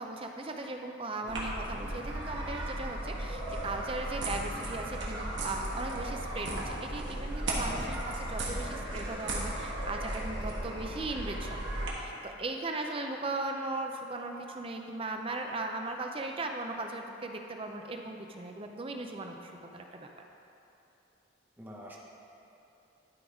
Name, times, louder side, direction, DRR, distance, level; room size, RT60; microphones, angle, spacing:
voice 1, 0.0-20.1, right 2 dB, 30° right, 3 dB, 0.5 m, -38 dB
sound 1, 1.3-11.9, right 1 dB, 70° right, 1.4 m, -35 dB
voice 2, 21.6-22.0, equal, 10° right, -4 dB, 0.9 m, -45 dB
11.5 x 3.9 x 4.9 m, 2.9 s
head